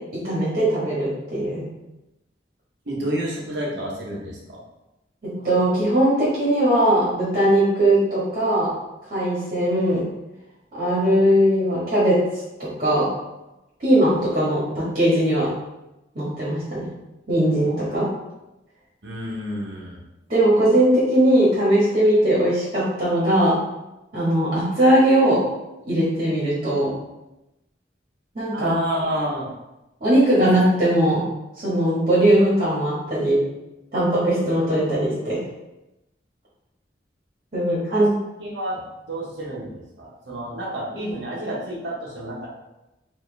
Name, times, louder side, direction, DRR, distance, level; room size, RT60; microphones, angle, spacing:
voice 1, 0.2-1.6 5.2-8.7 9.1-10.1 10.7-12.2 12.6-13.1 13.8-15.5 16.1-16.8 17.3-18.1 20.3-23.5 24.1-25.4 25.8-26.9 28.3-28.8 30.0-31.2 31.6-33.4 33.9-35.4 37.5-38.1, right 1 dB, 45° right, -8 dB, 1.5 m, -19 dB
voice 2, 2.9-4.6 19.0-20.0 28.5-29.5 37.7-38.1 38.4-42.5, right 1 dB, 85° right, -3 dB, 1.1 m, -30 dB
4.6 x 2.8 x 3.4 m, 0.97 s
head